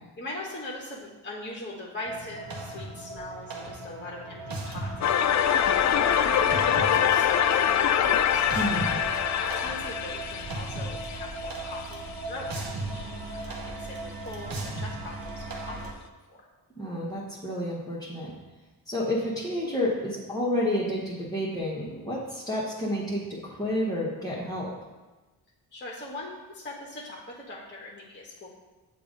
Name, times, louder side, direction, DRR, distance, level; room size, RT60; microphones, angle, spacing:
voice 1, 0.2-8.5 9.3-14.0 14.2-16.4 25.7-28.5, left 2 dB, 20° left, -3 dB, 1.2 m, -41 dB
sound 1, 2.1-15.9, right 2 dB, 45° right, 1.0 m, -37 dB
sound 2, 5.0-11.9, left 9 dB, 40° left, 0.4 m, -24 dB
voice 2, 8.5-9.0 16.8-18.3 18.9-24.7, left 1 dB, 5° left, -8 dB, 1.5 m, -30 dB
6.8 x 2.7 x 5.1 m, 1.2 s
supercardioid pair, 45°, 48 cm